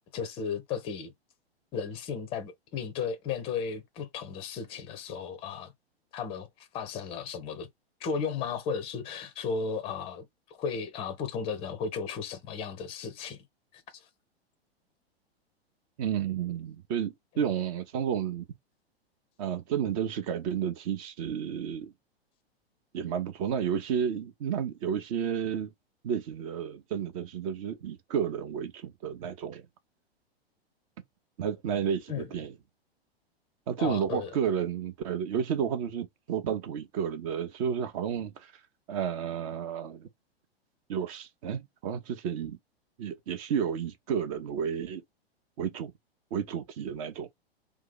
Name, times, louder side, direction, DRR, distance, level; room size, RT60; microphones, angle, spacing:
voice 1, 0.1-1.1 1.7-5.7 6.1-6.5 6.7-7.7 8.0-13.4 13.7-14.1 32.1-32.3 33.8-34.3, left 6 dB, 20° left, 0.6 m, -35 dB
voice 2, 16.0-18.5 19.4-21.9 22.9-25.7 26.0-29.6 31.4-32.5 33.7-38.5 38.9-40.1 40.9-42.6 43.0-45.0 45.6-45.9 46.3-47.3, right 8 dB, 35° right, 0.6 m, -31 dB
2.8 x 2.3 x 3.8 m
figure-of-eight pair, 105°, 31 cm